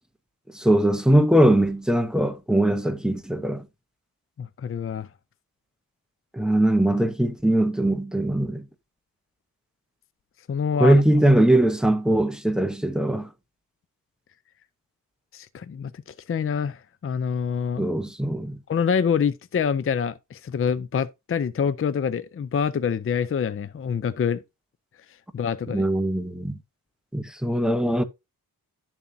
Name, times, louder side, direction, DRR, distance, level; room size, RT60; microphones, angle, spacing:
voice 1, 0.5-3.6 6.3-8.6 10.8-13.3 17.8-18.6 25.7-26.6 27.1-28.0, right 1 dB, ahead, 0.9 m, -21 dB
voice 2, 4.4-5.1 10.5-11.0 15.3-17.9 18.7-24.4 25.1-25.9, left 7 dB, 35° left, 0.5 m, -26 dB
11.5 x 7.1 x 2.7 m
wide cardioid pair, 125°, 37 cm